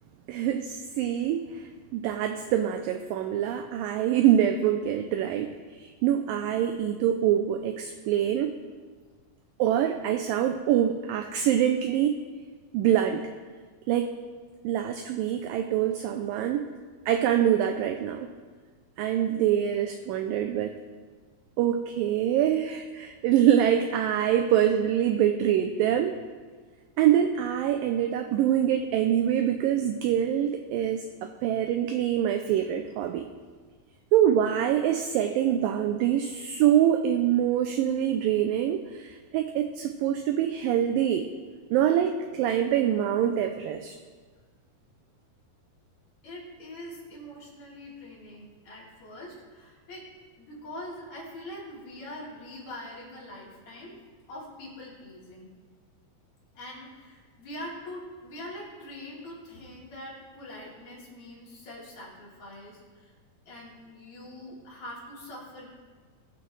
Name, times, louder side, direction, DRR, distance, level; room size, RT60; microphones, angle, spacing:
voice 1, 0.3-8.6 9.6-12.2 12.7-13.3 13.9-14.1 14.6-16.7 17.1-18.3 19.0-20.8 21.6-26.2 27.0-33.2 34.1-41.3 41.7-44.0, right 10 dB, 80° right, 6 dB, 2.1 m, -25 dB
voice 2, 46.2-50.1 50.4-54.0 54.3-55.5 56.5-63.1 63.4-65.7, left 1 dB, 45° left, -6 dB, 4.3 m, -43 dB
22.5 x 8.2 x 3.3 m, 1.5 s
omnidirectional pair, 4.5 m